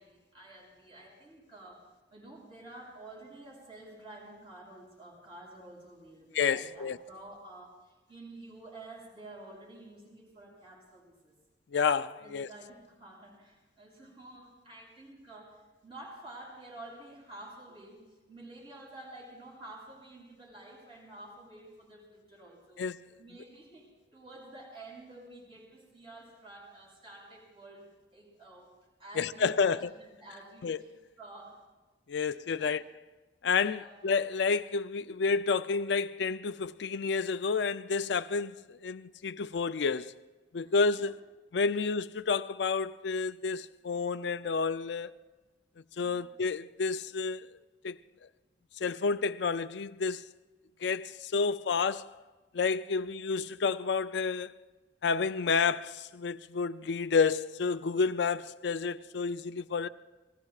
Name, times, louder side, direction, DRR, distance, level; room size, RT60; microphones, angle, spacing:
voice 1, 0.0-11.3 12.2-22.8 23.2-28.7 29.0-30.9 31.2-31.6 32.1-32.3 32.5-32.8 33.6-34.0 40.6-41.1 46.0-46.3 52.9-53.2, right 2 dB, 30° right, 7.3 m, -50 dB
voice 2, 6.3-7.0 11.7-12.5 22.8-23.0 29.2-29.9 30.6-30.8 32.1-32.8 33.4-40.1 40.5-41.1 41.5-45.1 46.0-47.4 47.8-48.0 48.8-50.3 50.8-52.1 52.5-54.6 55.0-59.9, left 5 dB, 70° left, 0.4 m, -30 dB
30.0 x 20.0 x 2.4 m
head